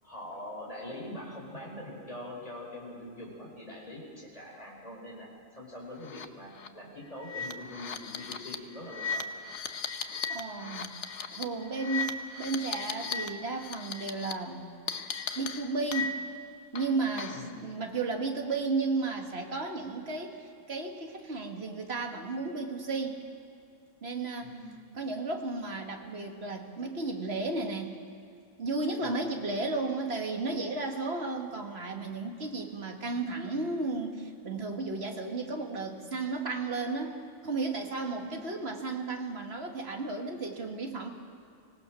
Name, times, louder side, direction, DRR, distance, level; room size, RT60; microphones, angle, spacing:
voice 1, 0.0-9.3 17.3-17.6 24.4-24.8 29.0-29.2 38.1-38.4, left 1 dB, 25° left, -2 dB, 4.9 m, -43 dB
sound 1, 6.0-6.3 6.6-6.7 7.2-13.3 13.6-14.3 14.9-16.4 16.7-17.5, left 5 dB, 65° left, 1.2 m, -37 dB
voice 2, 10.3-10.9 11.3-14.7 15.4-16.2 16.7-23.2 24.0-24.6 25.0-27.9 28.6-41.1, right 3 dB, 50° right, 3 dB, 2.0 m, -33 dB
25.0 x 18.0 x 6.2 m, 2.5 s
omnidirectional pair, 1.4 m